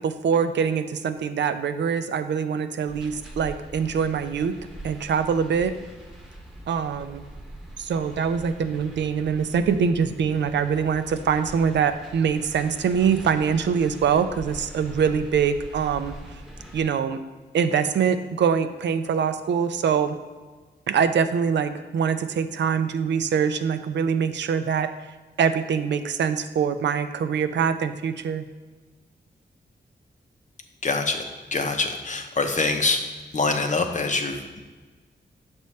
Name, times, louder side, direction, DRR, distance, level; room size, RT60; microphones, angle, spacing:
voice 1, 0.0-4.5 4.8-5.7 6.7-7.2 7.8-16.1 16.7-17.2 17.5-20.2 20.9-24.9 25.4-28.5, right 7 dB, 85° right, 10 dB, 0.4 m, -24 dB
sound 1, 2.9-16.8, right 1 dB, 5° right, 0.9 m, -43 dB
voice 2, 30.8-31.2 31.5-33.0 33.3-34.6, left 3 dB, 45° left, 5 dB, 0.7 m, -24 dB
6.7 x 5.2 x 3.2 m, 1.3 s
cardioid pair, 70°, 18 cm